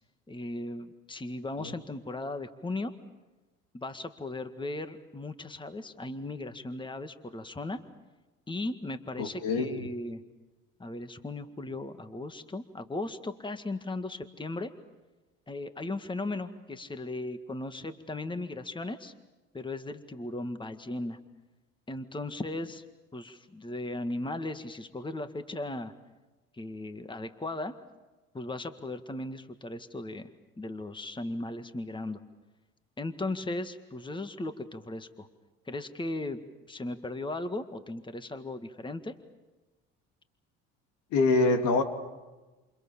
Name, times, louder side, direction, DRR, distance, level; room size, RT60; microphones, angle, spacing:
voice 1, 0.3-3.0 3.7-7.8 8.5-10.2 10.8-14.7 15.5-19.1 19.5-21.2 21.9-22.8 23.1-25.9 26.5-27.8 28.3-30.3 30.6-32.2 33.0-35.3 35.7-39.1, left 2 dB, 15° left, 9 dB, 1.9 m, -37 dB
voice 2, 9.2-9.9 41.1-41.8, left 3 dB, 70° left, 6 dB, 3.1 m, -25 dB
28.5 x 28.5 x 7.3 m, 1.2 s
hypercardioid pair, 70°, 31 cm